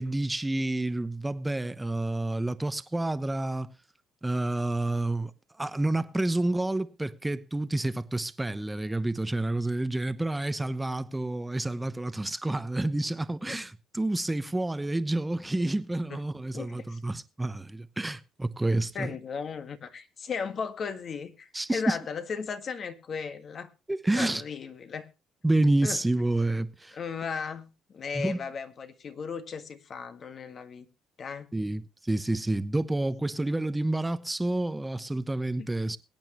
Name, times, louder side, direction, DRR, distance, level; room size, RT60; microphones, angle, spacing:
voice 1, 0.0-3.7 4.2-5.3 5.6-19.2 21.5-22.0 23.9-24.4 25.4-27.0 28.1-28.4 31.5-36.0, right 2 dB, 10° right, 0.9 m, -29 dB
voice 2, 16.5-17.0 18.9-23.7 24.2-25.1 25.8-26.0 26.9-30.9 31.2-31.5 35.6-35.7, left 6 dB, 50° left, 1.7 m, -36 dB
22.5 x 8.9 x 3.0 m
cardioid pair, 85°, 0 cm